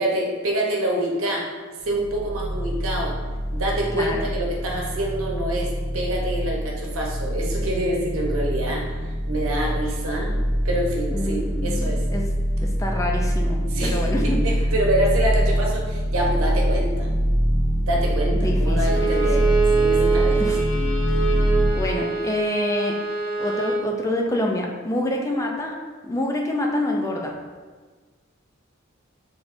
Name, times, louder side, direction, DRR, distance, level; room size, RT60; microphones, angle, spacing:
voice 1, 0.0-1.4 1.8-3.1 3.5-5.7 5.9-8.8 9.3-10.3 10.6-12.0 13.7-14.0 14.4-17.1 17.8-19.4 19.7-20.4, right 1 dB, 90° right, -1 dB, 0.9 m, -26 dB
sound 1, 1.8-21.7, equal, 35° right, 0.7 m, -24 dB
voice 2, 3.9-4.3 11.1-12.3 12.6-14.6 18.3-19.5 20.4-20.6 21.2-21.4 21.7-23.0 23.4-25.7 26.0-27.3, left 1 dB, 15° left, 0 dB, 0.4 m, -27 dB
Bowed string instrument, 18.8-23.9, right 5 dB, 75° left, 0.9 m, -24 dB
4.9 x 3.4 x 2.6 m, 1.4 s
head